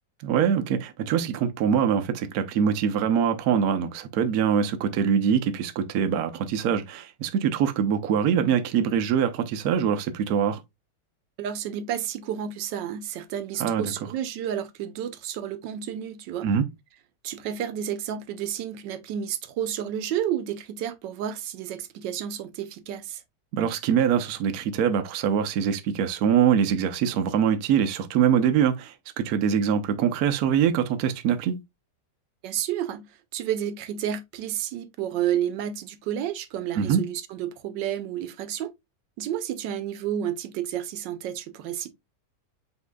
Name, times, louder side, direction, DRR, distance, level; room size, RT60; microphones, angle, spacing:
voice 1, 0.2-10.6 13.6-13.9 16.4-16.6 23.5-31.6 36.8-37.0, right 8 dB, 65° right, 1.1 m, -23 dB
voice 2, 11.4-16.5 17.2-23.2 32.4-33.0 33.3-38.7 39.2-41.9, right 10 dB, 85° right, 1.3 m, -31 dB
8.2 x 2.8 x 2.2 m
omnidirectional pair, 1.9 m